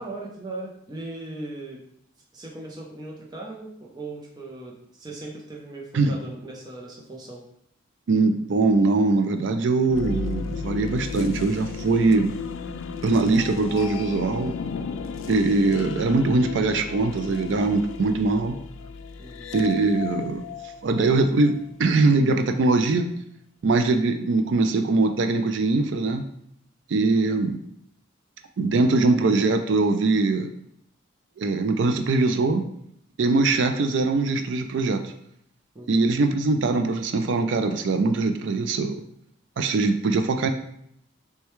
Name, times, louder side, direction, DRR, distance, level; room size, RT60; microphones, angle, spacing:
voice 1, 0.0-1.8 2.3-7.4 19.2-19.5 35.7-36.0, right 2 dB, 20° right, -3 dB, 0.6 m, -38 dB
voice 2, 8.1-12.3 13.0-14.5 15.2-18.6 19.5-20.4 20.8-23.1 23.6-26.2 26.9-27.6 28.6-30.5 31.4-32.6 33.2-35.1 35.9-39.0 39.6-40.5, right 3 dB, 65° right, 7 dB, 0.4 m, -22 dB
sound 1, 9.8-21.7, left 5 dB, 80° left, 0.3 m, -34 dB
6.3 x 2.2 x 3.0 m, 0.71 s
head